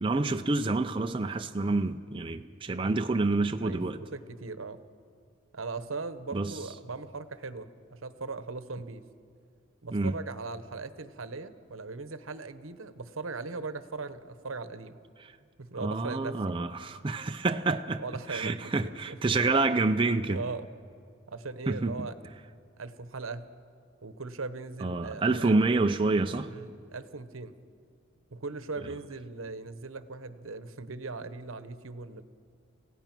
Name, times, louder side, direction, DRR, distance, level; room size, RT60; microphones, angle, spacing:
voice 1, 0.0-4.0 6.3-6.6 9.9-10.1 15.8-18.0 18.3-20.4 21.7-22.1 24.8-26.5, right 3 dB, 25° right, 6 dB, 0.5 m, -28 dB
voice 2, 3.6-4.8 5.5-9.0 9.8-15.0 15.6-16.4 18.0-19.2 20.3-20.7 21.3-22.2 22.8-23.5 24.0-25.5 26.5-27.5 28.3-32.2, right 3 dB, 80° right, 12 dB, 1.0 m, -39 dB
29.0 x 16.0 x 6.0 m, 2.2 s
head